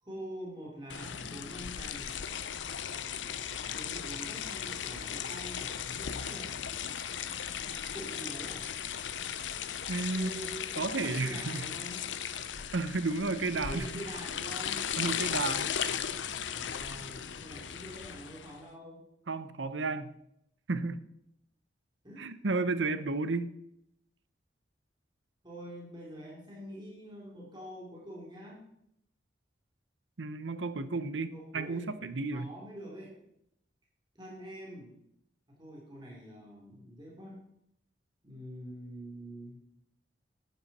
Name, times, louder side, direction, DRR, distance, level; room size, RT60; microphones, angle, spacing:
voice 1, 0.0-2.2 3.7-6.6 7.7-8.7 10.1-12.1 13.5-14.8 16.6-19.0 22.0-22.3 25.4-28.6 31.3-33.2 34.1-34.9 35.5-37.5 38.2-39.6, equal, 25° right, 3.1 m, -45 dB
sound 1, 0.9-18.6, left 8 dB, 85° left, 0.7 m, -37 dB
voice 2, 9.9-10.5 10.8-11.7 12.7-14.0 15.0-15.7 19.3-20.1 20.7-21.0 22.2-23.5 30.2-32.5, right 3 dB, 85° right, 0.8 m, -32 dB
12.0 x 10.0 x 4.2 m
head